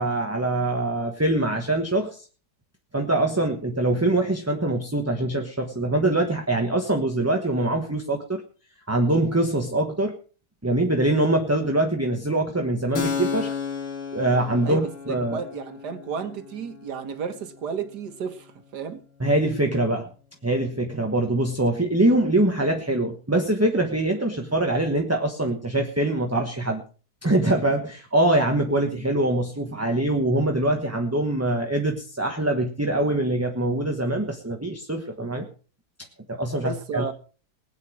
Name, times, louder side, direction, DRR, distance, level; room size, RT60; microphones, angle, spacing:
voice 1, 0.0-2.3 2.9-8.4 8.9-10.2 10.6-13.5 14.1-15.4 19.2-20.1 20.4-26.8 27.2-35.5 36.3-37.0, right 1 dB, 10° right, 3 dB, 1.1 m, -23 dB
Keyboard (musical), 12.9-20.3, left 6 dB, 50° left, 2.0 m, -35 dB
voice 2, 14.7-19.0 36.6-37.1, right 6 dB, 75° right, 9 dB, 2.0 m, -33 dB
20.0 x 9.1 x 4.8 m, 0.38 s
omnidirectional pair, 1.8 m